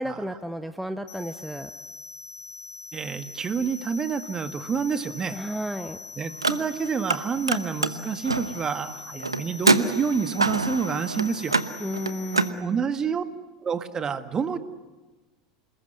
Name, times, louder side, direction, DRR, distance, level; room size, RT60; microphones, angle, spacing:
voice 1, 0.0-1.7 5.3-6.0 11.8-12.8, equal, ahead, 9 dB, 1.1 m, -32 dB
sound 1, 1.1-12.5, left 5 dB, 65° left, 2.2 m, -42 dB
voice 2, 2.9-5.4 6.2-11.5 12.6-13.2 13.6-14.6, right 6 dB, 25° right, 11 dB, 1.8 m, -28 dB
Car, 6.3-7.2 7.4-12.5, right 3 dB, 85° right, 1.0 m, -26 dB
28.0 x 20.5 x 9.9 m, 1.2 s
figure-of-eight pair, 80°, 2 cm